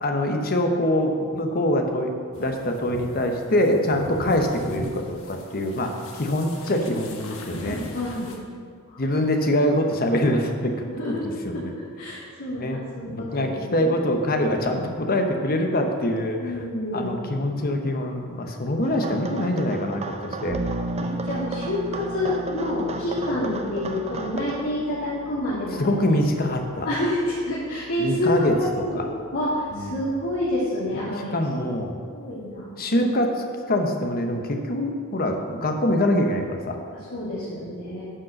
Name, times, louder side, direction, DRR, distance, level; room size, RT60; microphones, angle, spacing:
voice 1, 0.0-2.1 2.4-7.8 9.0-10.7 11.4-11.7 12.6-12.8 13.1-16.5 16.9-20.6 25.8-26.9 28.0-28.5 28.9-29.1 29.7-29.9 31.0-32.0 32.8-36.8, left 1 dB, 45° left, 4 dB, 0.9 m, -24 dB
sound 1, 2.3-8.4, left 1 dB, 65° left, 1.2 m, -39 dB
voice 2, 7.7-8.3 8.9-9.0 10.9-14.0 16.4-17.2 21.0-25.9 26.8-29.1 29.3-31.3 32.1-32.8 36.9-38.0, left 1 dB, 90° left, -12 dB, 2.6 m, -28 dB
sound 2, 18.8-24.6, right 3 dB, 30° right, 0.6 m, -34 dB
Bass guitar, 20.5-30.3, right 1 dB, 70° right, 0.9 m, -37 dB
9.8 x 5.2 x 6.5 m, 2.2 s
head